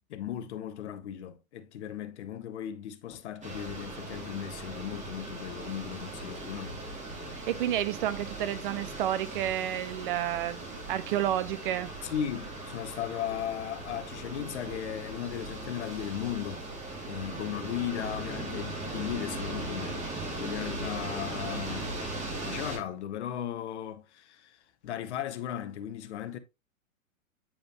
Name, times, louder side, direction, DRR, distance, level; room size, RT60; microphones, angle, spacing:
voice 1, 0.0-6.9 12.0-16.6 17.1-22.1 22.4-26.4, left 10 dB, 55° left, 1.1 m, -37 dB
sound 1, 3.4-22.8, right 2 dB, 15° right, 2.4 m, -39 dB
voice 2, 7.5-12.1, right 12 dB, 40° right, 0.6 m, -30 dB
8.7 x 5.0 x 2.9 m
figure-of-eight pair, 110°, 41 cm